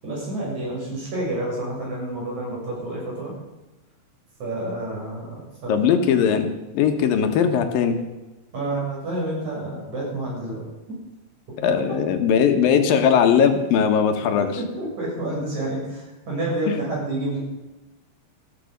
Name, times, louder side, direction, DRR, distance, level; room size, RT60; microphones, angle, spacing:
voice 1, 0.0-3.4 4.4-6.0 8.5-10.6 11.9-12.0 14.4-17.4, right 2 dB, 55° right, -4 dB, 8.2 m, -29 dB
voice 2, 5.7-6.5 6.7-8.0 11.6-14.5 16.7-16.8, left 7 dB, 85° left, 6 dB, 3.1 m, -19 dB
15.0 x 13.5 x 5.3 m, 1.1 s
omnidirectional pair, 4.0 m